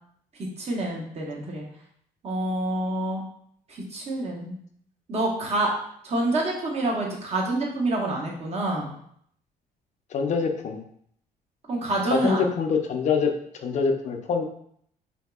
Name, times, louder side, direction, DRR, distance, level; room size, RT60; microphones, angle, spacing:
voice 1, 0.4-1.6 2.2-3.3 3.7-4.5 5.1-5.7 6.0-9.0 11.7-12.4, right 1 dB, 40° right, -1 dB, 0.9 m, -27 dB
voice 2, 10.1-10.8 12.0-13.4 13.6-14.4, left 5 dB, 45° left, 4 dB, 0.5 m, -25 dB
3.8 x 2.7 x 2.3 m, 0.66 s
cardioid pair, 110°, 17 cm